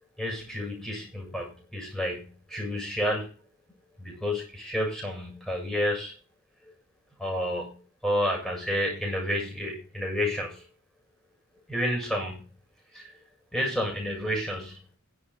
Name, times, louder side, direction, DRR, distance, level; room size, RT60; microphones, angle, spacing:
voice 1, 0.2-3.3 4.0-6.1 7.2-10.6 11.7-12.4 12.9-13.1 13.5-14.8, equal, ahead, -2 dB, 7.7 m, -30 dB
11.0 x 9.0 x 5.7 m, 0.37 s
head